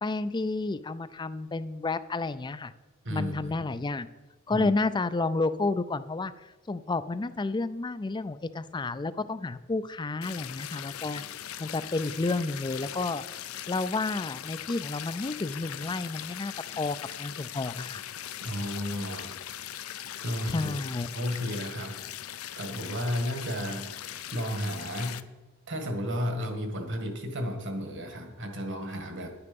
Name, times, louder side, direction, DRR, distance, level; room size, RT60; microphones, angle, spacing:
voice 1, 0.0-2.7 3.1-4.1 4.5-11.2 11.6-13.2 13.7-18.0 20.5-21.1, left 3 dB, 20° left, 14 dB, 0.4 m, -31 dB
voice 2, 3.0-3.5 4.5-4.7 18.4-19.3 20.2-20.7 21.1-22.0 22.6-25.2 25.7-29.3, equal, 55° right, 5 dB, 1.8 m, -33 dB
sound 1, 10.2-25.2, left 11 dB, 75° left, 0.6 m, -40 dB
10.5 x 9.8 x 5.3 m, 1.2 s
head